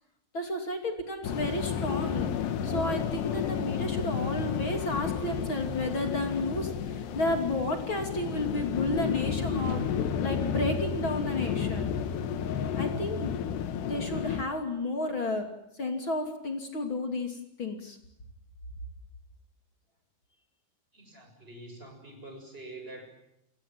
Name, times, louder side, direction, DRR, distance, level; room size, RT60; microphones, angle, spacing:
voice 1, 0.3-11.9 12.8-13.3 13.8-15.5 15.8-18.0, left 1 dB, 30° left, 4 dB, 3.0 m, -32 dB
sound 1, 1.2-14.4, left 8 dB, 70° left, 3.5 m, -31 dB
voice 2, 20.9-23.1, right 2 dB, 10° right, 5 dB, 6.9 m, -46 dB
30.0 x 21.5 x 7.6 m, 0.78 s
omnidirectional pair, 5.1 m